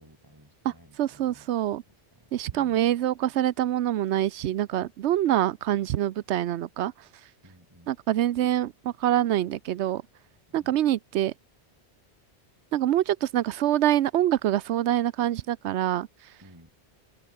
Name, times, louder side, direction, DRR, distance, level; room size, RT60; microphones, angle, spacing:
voice 1, 0.0-1.5 1.9-2.8 7.4-7.9 10.5-10.8 16.4-16.7, equal, 15° right, 7.5 m, -55 dB
voice 2, 1.0-1.8 2.3-6.9 7.9-10.0 10.5-11.3 12.7-16.1, right 12 dB, 85° right, 0.9 m, -25 dB
open air
omnidirectional pair, 1.1 m